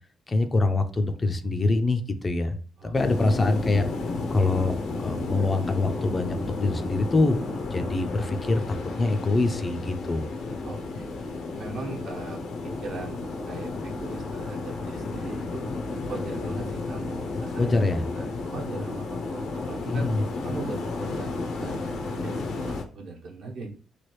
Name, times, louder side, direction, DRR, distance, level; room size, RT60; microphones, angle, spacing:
voice 1, 0.3-2.6 2.8-3.9 4.3-7.4 7.7-10.3 17.6-18.1 19.9-20.2, left 2 dB, 25° left, 8 dB, 0.3 m, -24 dB
sound 1, 2.9-22.8, left 3 dB, 75° left, 0.6 m, -32 dB
voice 2, 10.6-11.1 11.5-15.6 16.1-20.1 20.4-23.7, right 3 dB, 70° right, -1 dB, 0.9 m, -40 dB
3.1 x 2.3 x 3.1 m, 0.41 s
cardioid pair, 130°, 0 cm